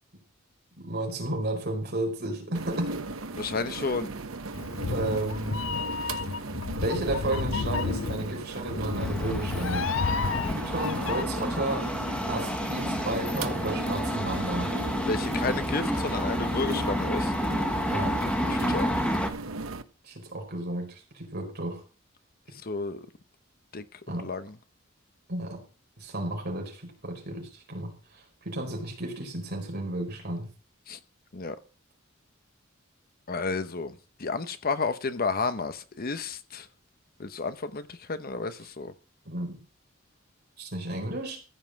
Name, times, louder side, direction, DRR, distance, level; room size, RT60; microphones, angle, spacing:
voice 1, 0.8-3.0 4.9-5.7 6.1-6.2 6.8-9.9 10.4-11.9 12.3-14.7 17.9-18.2 20.0-21.8 24.1-24.3 25.3-25.6 26.0-30.5 39.2-39.6 40.6-41.4, right 1 dB, 55° right, 4.5 m, -33 dB
sound 1, 2.5-19.8, right 3 dB, 90° right, 1.0 m, -37 dB
voice 2, 3.3-4.1 6.0-6.1 15.1-17.3 18.5-18.9 22.5-23.1 23.7-24.5 30.9-31.0 31.3-31.6 33.3-36.7 37.2-38.9, left 4 dB, 45° left, 0.9 m, -32 dB
Meow, 4.5-11.2, left 4 dB, 70° left, 0.6 m, -32 dB
Small Train, 9.0-19.3, equal, 5° left, 1.5 m, -30 dB
14.5 x 5.4 x 7.6 m
head